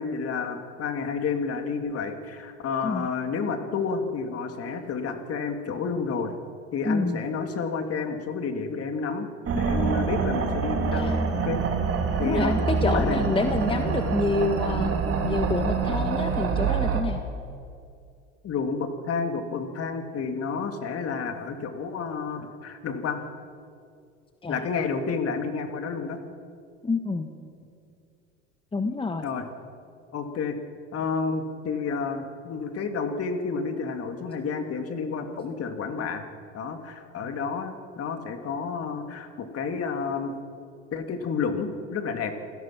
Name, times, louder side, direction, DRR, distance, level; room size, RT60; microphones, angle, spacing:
voice 1, 0.0-6.3 6.7-11.1 11.4-11.6 12.2-12.6 12.8-13.2 18.4-23.2 24.5-26.2 29.2-29.4 30.1-30.5 30.9-36.2 36.5-40.3 40.9-42.3, left 5 dB, 40° left, 6 dB, 2.6 m, -30 dB
voice 2, 6.8-7.2 10.9-11.2 12.2-14.9 15.2-17.2 24.4-24.6 26.8-27.3 28.7-29.3, left 3 dB, 15° left, 6 dB, 1.4 m, -27 dB
sound 1, 9.5-17.0, right 5 dB, 40° right, 3.6 m, -26 dB
27.5 x 17.0 x 6.1 m, 2.4 s
hypercardioid pair, 90°, 37 cm